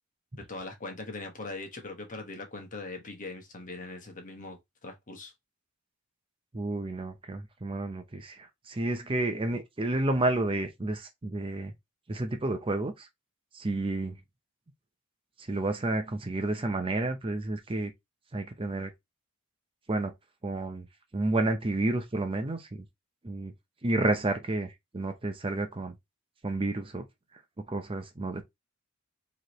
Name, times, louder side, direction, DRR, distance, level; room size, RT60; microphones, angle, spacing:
voice 1, 0.4-5.3, left 3 dB, 40° left, 1.2 m, -41 dB
voice 2, 6.5-11.7 12.1-13.1 13.5-14.2 15.5-17.9 18.3-18.9 19.9-20.1 20.4-20.8 21.1-22.8 23.2-23.5 23.8-25.9 26.4-27.1 27.6-28.4, right 2 dB, 25° right, 0.6 m, -30 dB
4.7 x 3.1 x 3.0 m
head